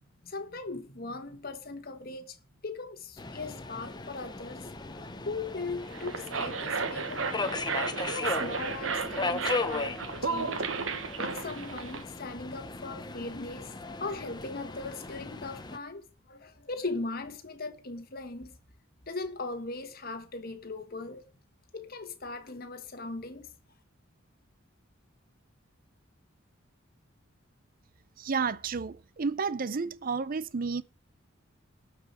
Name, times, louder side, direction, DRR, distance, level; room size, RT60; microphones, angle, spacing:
voice 1, 0.2-2.4 2.6-4.7 5.0-7.6 8.1-10.6 11.2-13.7 14.0-18.5 19.1-21.2 21.7-23.5, left 3 dB, 45° left, 1.4 m, -39 dB
Subway metro underground, 3.2-15.8, left 3 dB, 20° left, 0.9 m, -37 dB
sound 1, 5.8-12.0, right 5 dB, 70° right, 1.2 m, -34 dB
voice 2, 28.2-30.8, right 5 dB, 45° right, 0.5 m, -31 dB
12.5 x 4.9 x 8.0 m
head